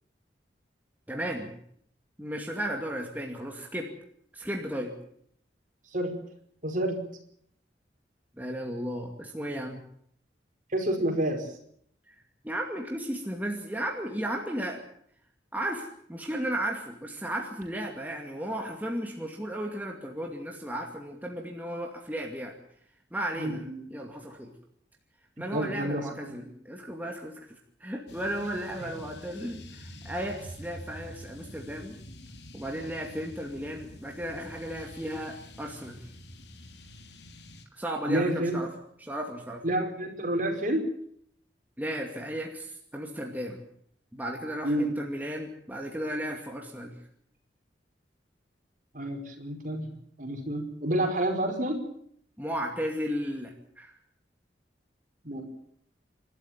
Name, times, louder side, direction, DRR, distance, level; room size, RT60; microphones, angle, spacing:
voice 1, 1.1-1.6 2.2-3.9 4.3-4.9 8.4-9.8 12.1-12.2 12.4-14.8 15.5-22.5 23.1-24.5 25.4-27.4 27.8-32.0 32.5-36.0 37.7-38.7 39.0-39.6 41.8-43.6 44.1-46.9 52.4-53.9, right 1 dB, 10° right, 1 dB, 2.4 m, -34 dB
voice 2, 6.6-7.0 10.7-11.5 23.4-23.8 25.5-26.5 28.8-28.9 38.1-38.5 39.6-40.9 44.6-44.9 48.9-49.9 50.2-51.8 55.2-55.4, right 1 dB, 45° right, 4 dB, 4.9 m, -29 dB
sound 1, 28.1-37.6, equal, 70° left, 2.6 m, -47 dB
29.0 x 12.5 x 8.9 m, 0.66 s
head